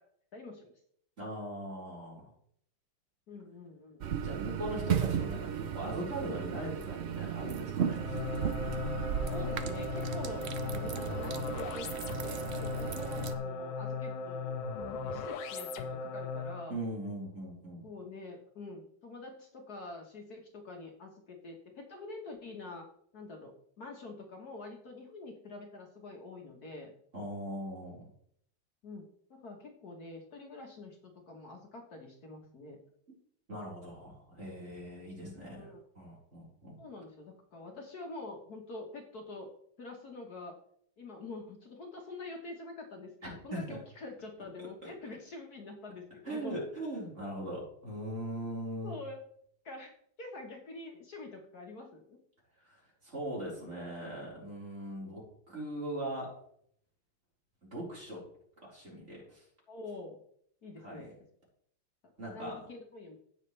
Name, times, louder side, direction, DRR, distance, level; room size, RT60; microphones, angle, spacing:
voice 1, 0.3-0.7 3.3-4.0 9.3-14.5 15.0-16.7 17.8-22.9 23.1-26.9 28.8-29.0 29.3-32.8 35.4-35.8 36.8-40.5 41.0-43.1 43.4-46.6 48.8-49.2 49.6-52.2 59.7-60.2 60.6-61.1 62.3-63.2, left 3 dB, 55° left, 1 dB, 1.8 m, -46 dB
voice 2, 1.2-2.3 4.2-8.2 16.7-17.9 27.1-28.0 33.5-35.7 35.9-36.8 43.2-43.8 44.6-44.9 46.2-48.9 52.6-52.7 53.0-56.4 57.6-58.2 58.6-59.4 60.8-61.1 62.2-62.6, right 1 dB, 35° right, -5 dB, 4.8 m, -40 dB
sound 1, 4.0-13.3, right 9 dB, 75° right, 0.6 m, -35 dB
sound 2, 7.9-16.7, left 5 dB, 85° left, 1.6 m, -37 dB
16.5 x 6.5 x 3.3 m, 0.66 s
omnidirectional pair, 2.1 m